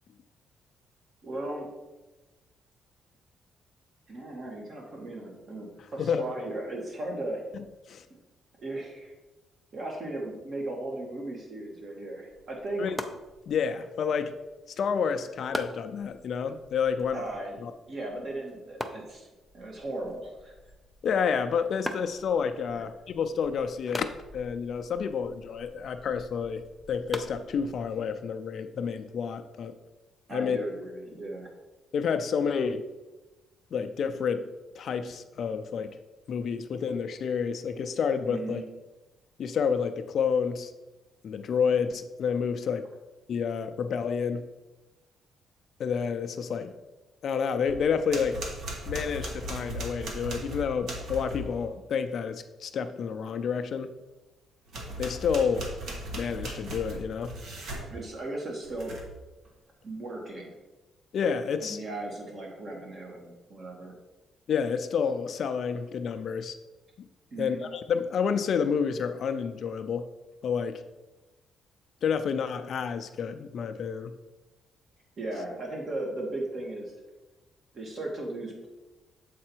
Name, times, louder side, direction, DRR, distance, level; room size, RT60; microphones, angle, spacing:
voice 1, 1.2-1.7 4.1-7.4 8.1-8.2 8.6-9.1 9.7-12.9 17.1-17.6 17.9-19.3 19.5-20.5 22.7-22.8 30.3-31.5 38.3-38.6 57.9-58.9 59.8-60.5 61.6-63.9 67.3-67.6 75.2-76.9 77.7-78.7, right 2 dB, 45° right, -1 dB, 1.8 m, -36 dB
sound 1, 12.3-28.1, equal, ahead, 0.5 m, -43 dB
voice 2, 13.5-14.4 14.8-17.3 17.6-17.7 21.0-24.1 24.3-26.6 26.9-29.8 30.3-30.6 31.9-32.8 33.7-34.5 34.8-36.0 36.3-38.6 39.4-40.7 41.2-42.9 43.3-44.5 45.8-46.7 47.2-48.4 48.9-53.9 55.0-55.7 56.1-57.4 61.1-61.8 64.5-66.5 67.4-70.1 70.4-70.8 72.0-74.1, left 6 dB, 55° left, 8 dB, 0.4 m, -29 dB
sound 2, 47.7-51.6 54.7-57.9 58.6-59.2, right 1 dB, 70° right, 1.3 m, -38 dB
7.4 x 4.2 x 4.5 m, 1.1 s
cardioid pair, 130°, 0 cm